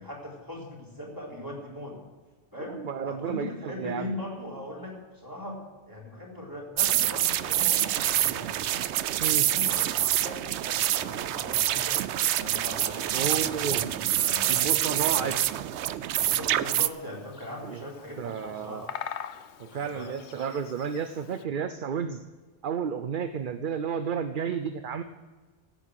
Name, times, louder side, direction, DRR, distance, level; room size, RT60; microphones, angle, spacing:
voice 1, 0.0-2.0 2.5-2.8 3.0-5.6 5.9-8.6 9.1-12.0 12.4-14.8 15.1-15.4 16.2-18.9 19.6-20.2, left 1 dB, 20° right, -3 dB, 3.9 m, -40 dB
voice 2, 2.7-4.2 9.2-9.5 13.1-13.8 14.5-15.4 17.6-17.9 18.2-18.9 19.6-22.2 22.6-25.0, right 7 dB, 55° right, 10 dB, 0.8 m, -32 dB
sound 1, 6.8-16.6, left 1 dB, 20° left, 1.7 m, -51 dB
sound 2, 6.8-16.9, right 12 dB, 85° right, 0.9 m, -26 dB
Bird vocalization bird call bird song, 16.4-21.4, left 9 dB, 90° left, 1.0 m, -43 dB
16.5 x 8.8 x 6.4 m, 1.4 s
omnidirectional pair, 1.1 m